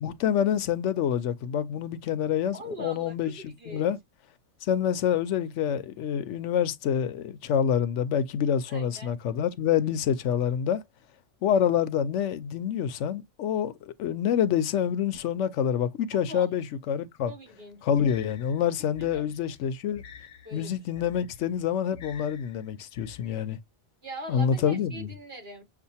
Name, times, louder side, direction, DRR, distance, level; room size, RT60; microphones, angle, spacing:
voice 1, 0.0-4.0 4.6-10.8 11.4-17.3 17.8-20.0 20.5-23.6 24.3-25.1, left 8 dB, 85° left, 0.9 m, -27 dB
voice 2, 2.5-3.9 8.7-9.1 16.3-16.5 17.3-17.8 19.0-19.3 20.4-21.1 24.0-25.6, right 2 dB, 55° right, 2.2 m, -42 dB
sound 1, 18.0-23.4, left 7 dB, 55° left, 0.8 m, -49 dB
6.7 x 2.5 x 2.7 m
omnidirectional pair, 1.2 m